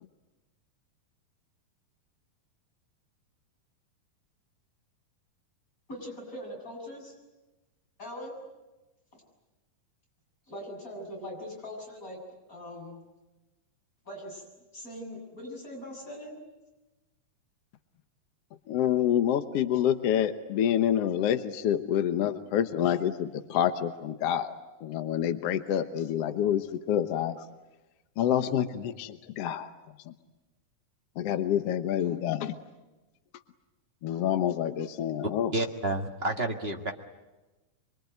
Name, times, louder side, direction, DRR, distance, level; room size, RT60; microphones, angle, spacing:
voice 1, 5.9-7.1 8.0-8.3 10.5-12.2 12.5-13.0 14.1-14.4 14.7-16.4, left 1 dB, 20° left, 0 dB, 7.5 m, -41 dB
voice 2, 18.7-24.5 24.8-27.4 28.2-29.7 30.1-30.2 31.2-32.5 34.0-35.5, left 10 dB, 65° left, 9 dB, 1.6 m, -27 dB
voice 3, 35.5-36.9, right 2 dB, 50° right, 2 dB, 0.7 m, -30 dB
25.0 x 25.0 x 9.3 m, 1.1 s
omnidirectional pair, 4.0 m